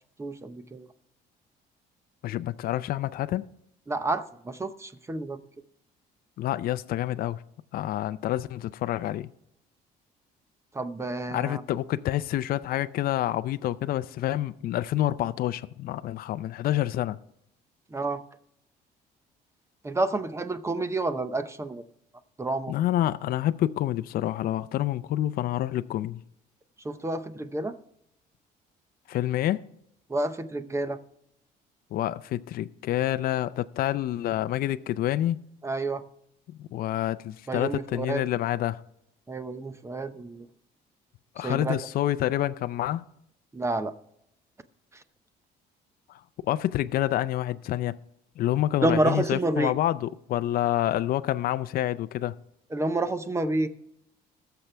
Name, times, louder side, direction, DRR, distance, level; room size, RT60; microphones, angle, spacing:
voice 1, 0.2-0.9 3.9-5.4 10.7-11.6 17.9-18.2 19.8-21.8 22.4-22.8 26.8-27.8 30.1-31.0 35.6-36.0 37.5-38.2 39.3-40.5 41.4-41.8 43.5-44.0 48.8-49.7 52.7-53.7, right 2 dB, 15° right, 0.8 m, -29 dB
voice 2, 2.2-3.5 6.4-7.4 7.7-9.3 11.3-17.2 22.7-26.2 29.1-29.6 31.9-35.4 36.6-38.8 41.4-43.0 46.1-48.0 48.4-52.3, left 13 dB, 60° left, 0.5 m, -28 dB
20.5 x 6.9 x 3.3 m
cardioid pair, 110°, 17 cm